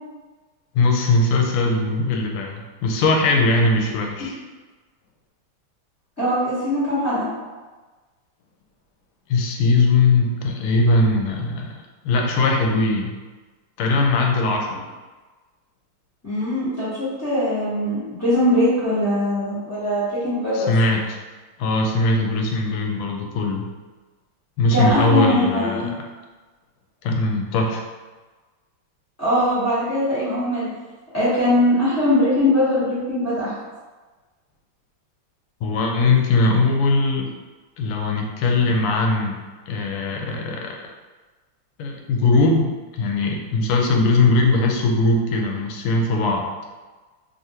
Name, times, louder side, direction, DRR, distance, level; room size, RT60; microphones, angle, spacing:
voice 1, 0.7-4.4 9.3-11.8 12.0-13.1 13.8-14.9 20.5-21.2 21.6-23.7 24.6-25.9 27.0-27.8 35.6-37.3 37.8-39.4 39.7-40.8 41.8-46.5, left 2 dB, 90° left, 2 dB, 1.5 m, -20 dB
voice 2, 6.2-7.3 16.2-20.7 24.7-25.9 29.2-30.7 31.1-33.5, left 1 dB, 15° left, -12 dB, 0.5 m, -21 dB
3.4 x 2.5 x 2.7 m, 1.3 s
omnidirectional pair, 2.4 m